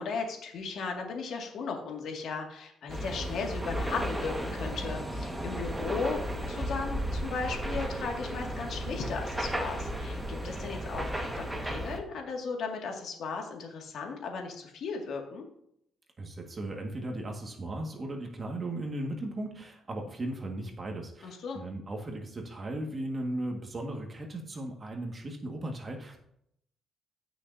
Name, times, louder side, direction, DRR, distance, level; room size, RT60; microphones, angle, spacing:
voice 1, 0.0-15.4 21.2-21.6, left 4 dB, 70° left, 1 dB, 2.1 m, -36 dB
sound 1, 2.9-12.0, right 1 dB, 10° right, 1.6 m, -34 dB
voice 2, 16.2-26.2, right 1 dB, 35° right, 2 dB, 1.8 m, -37 dB
16.0 x 6.3 x 2.8 m, 0.73 s
cardioid pair, 90°, 0 cm